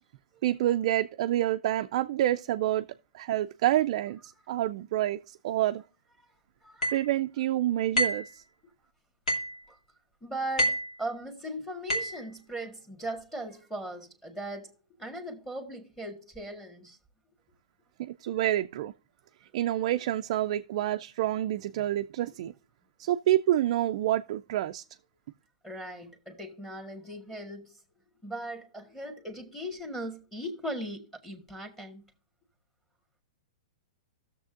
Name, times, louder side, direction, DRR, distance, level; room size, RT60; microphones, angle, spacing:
voice 1, 0.4-2.9 3.1-5.8 6.9-8.4 18.0-18.9 19.5-22.5 23.0-24.8, right 13 dB, 55° right, 0.3 m, -28 dB
voice 2, 6.6-7.0 9.7-9.8 10.2-17.0 25.6-27.8 28.2-32.0, right 1 dB, 5° left, 1.6 m, -39 dB
sound 1, 6.8-7.1 8.0-8.3 9.3-9.6 10.6-10.9 11.9-12.2, equal, 90° left, 2.3 m, -28 dB
16.0 x 6.7 x 2.5 m
hypercardioid pair, 125°, 4 cm